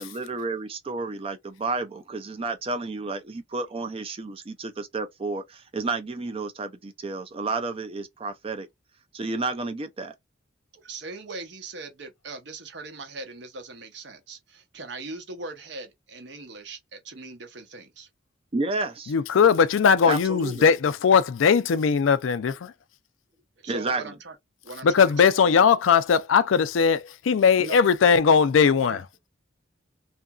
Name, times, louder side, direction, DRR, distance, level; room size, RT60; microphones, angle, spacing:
voice 1, 0.0-8.7 9.1-10.1 18.5-19.1 20.1-20.7 23.7-24.1, right 3 dB, 30° right, 0.4 m, -31 dB
voice 2, 10.7-18.1 23.6-24.4 24.6-25.5 27.6-27.8 28.5-29.0, right 3 dB, 60° right, 0.7 m, -40 dB
voice 3, 19.1-22.7 24.8-29.0, left 6 dB, 80° left, 0.4 m, -19 dB
2.8 x 2.5 x 2.3 m
head